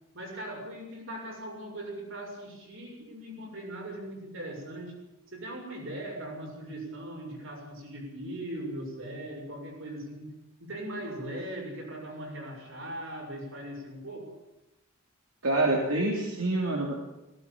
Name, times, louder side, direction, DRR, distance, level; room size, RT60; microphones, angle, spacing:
voice 1, 0.1-4.9 5.3-10.3 10.6-14.3, right 1 dB, 60° right, 1 dB, 6.8 m, -39 dB
voice 2, 15.4-16.9, right 2 dB, 80° right, -1 dB, 3.6 m, -26 dB
18.0 x 17.5 x 9.0 m, 0.90 s
head